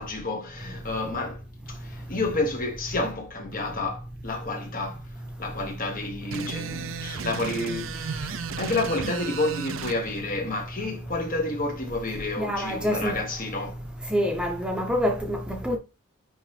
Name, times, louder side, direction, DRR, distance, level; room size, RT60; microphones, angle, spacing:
voice 1, 0.0-1.4 1.7-5.0 5.4-13.8, left 2 dB, 45° left, 1.7 m, -30 dB
sound 1, 6.3-10.0, right 6 dB, 80° right, 0.5 m, -34 dB
voice 2, 12.4-13.2 14.1-15.8, equal, 5° right, 0.9 m, -26 dB
9.9 x 3.3 x 3.3 m
head